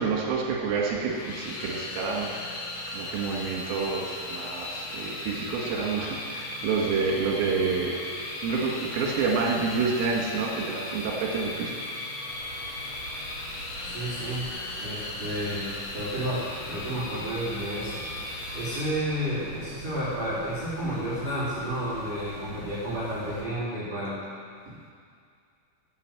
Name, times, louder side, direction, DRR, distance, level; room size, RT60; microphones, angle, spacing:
voice 1, 0.0-2.3 2.9-8.0 8.4-11.8 18.8-18.9, right 5 dB, 85° right, -1 dB, 4.4 m, -28 dB
sound 1, 1.0-18.8, left 2 dB, 65° left, 4.0 m, -37 dB
sound 2, 12.3-23.5, equal, 40° left, 4.3 m, -45 dB
voice 2, 13.8-14.4 14.8-18.0 18.5-24.2 24.6-24.7, right 1 dB, 35° right, -11 dB, 4.3 m, -31 dB
13.0 x 7.8 x 9.1 m, 2.2 s
omnidirectional pair, 5.8 m